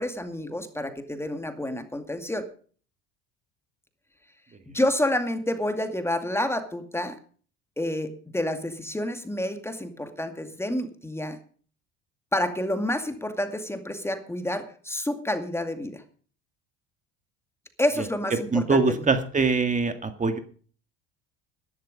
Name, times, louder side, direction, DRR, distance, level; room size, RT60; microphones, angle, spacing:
voice 1, 0.0-2.5 4.7-7.2 7.8-11.4 12.3-16.0 17.8-19.1, left 1 dB, 10° left, 8 dB, 2.2 m, -29 dB
voice 2, 18.5-20.4, right 4 dB, 25° right, 8 dB, 2.0 m, -23 dB
12.0 x 11.5 x 5.2 m, 0.42 s
supercardioid pair, 90°, 30 cm